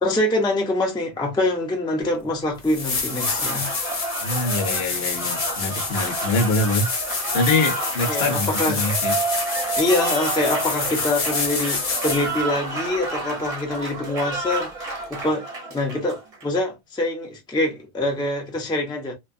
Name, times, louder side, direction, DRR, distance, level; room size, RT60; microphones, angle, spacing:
voice 1, 0.0-3.7 8.1-8.8 9.8-15.4 15.7-19.1, left 2 dB, 5° left, 0.4 m, -25 dB
sound 1, 2.1-2.2 2.6-12.4 15.2-15.3, left 4 dB, 40° left, 0.7 m, -27 dB
Applause, 2.9-16.6, right 3 dB, 40° right, 0.8 m, -30 dB
voice 2, 4.2-6.9 7.3-9.2, left 2 dB, 70° left, 0.9 m, -24 dB
2.9 x 2.2 x 2.4 m
omnidirectional pair, 1.1 m